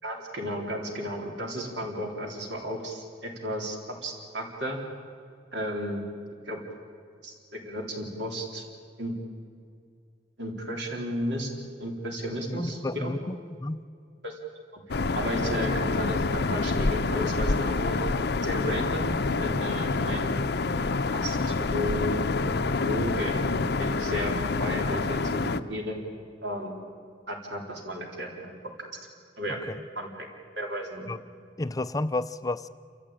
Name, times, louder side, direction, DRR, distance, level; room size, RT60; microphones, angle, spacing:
voice 1, 0.0-3.8 4.0-4.8 5.5-6.0 6.5-6.6 7.2-8.6 9.0-9.1 10.4-11.5 11.8-13.1 14.2-14.4 14.7-14.8 15.1-18.0 18.4-20.4 21.1-22.2 22.7-23.4 23.8-26.0 26.4-26.7 27.3-28.5 29.4-29.6 30.0-30.3 30.6-31.1, equal, 70° right, 1 dB, 3.8 m, -33 dB
voice 2, 12.5-13.9 29.5-29.8 31.1-31.2 31.6-32.7, left 2 dB, 20° left, 13 dB, 0.5 m, -31 dB
sound 1, 14.9-25.6, left 3 dB, 65° left, 0.7 m, -27 dB
28.5 x 14.0 x 8.9 m, 2.3 s
head